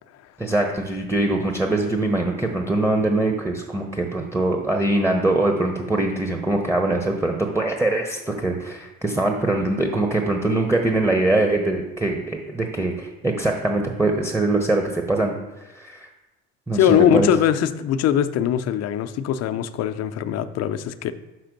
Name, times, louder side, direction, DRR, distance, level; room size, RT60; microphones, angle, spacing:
voice 1, 0.4-15.4 15.7-16.1 16.7-17.3, right 2 dB, 10° right, 2 dB, 1.0 m, -22 dB
voice 2, 16.7-21.1, left 9 dB, 60° left, 10 dB, 0.6 m, -21 dB
6.0 x 5.6 x 5.3 m, 1.0 s
supercardioid pair, 75°, 30 cm